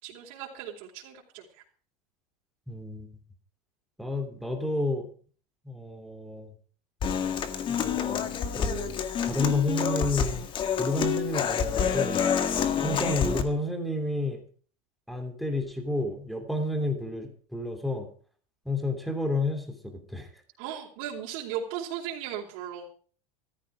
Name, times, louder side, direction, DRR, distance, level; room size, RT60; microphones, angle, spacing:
voice 1, 0.0-1.6 20.6-22.8, right 9 dB, 60° right, -3 dB, 4.4 m, -37 dB
voice 2, 2.7-3.1 4.0-5.1 5.6-6.5 7.7-9.0 9.2-10.5 10.8-12.2 12.8-14.4 15.1-18.1 18.6-20.3, left 2 dB, ahead, 6 dB, 2.9 m, -30 dB
Human voice / Acoustic guitar, 7.0-13.4, left 7 dB, 30° left, 1.8 m, -28 dB
15.5 x 14.0 x 5.0 m, 0.43 s
supercardioid pair, 160°, 18 cm